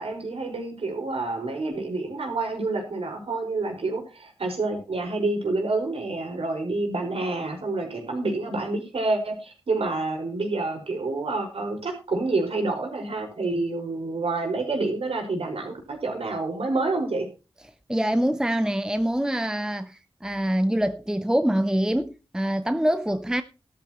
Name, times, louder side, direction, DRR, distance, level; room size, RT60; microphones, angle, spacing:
voice 1, 0.0-17.3, right 3 dB, 80° right, 5.1 m, -28 dB
voice 2, 17.9-23.4, right 1 dB, 5° right, 0.7 m, -25 dB
14.5 x 13.0 x 3.0 m
wide cardioid pair, 65°, 10 cm